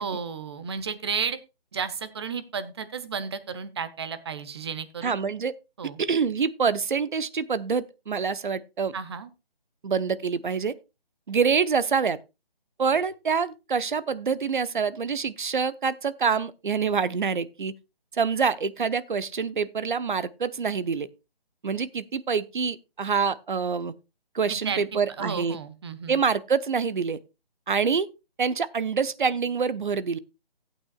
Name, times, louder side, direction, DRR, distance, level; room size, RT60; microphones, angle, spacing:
voice 1, 0.0-1.4 1.7-5.2 5.8-6.0 8.9-9.3 24.5-26.2, right 6 dB, 25° right, 0.9 m, -33 dB
voice 2, 5.0-5.5 6.0-8.9 9.8-10.7 11.3-12.2 12.8-17.7 18.1-21.1 21.6-23.9 24.3-25.6 26.1-27.2 27.7-28.1 28.4-30.2, right 5 dB, 55° right, 0.9 m, -26 dB
15.5 x 8.8 x 2.3 m
figure-of-eight pair, 155°, 30 cm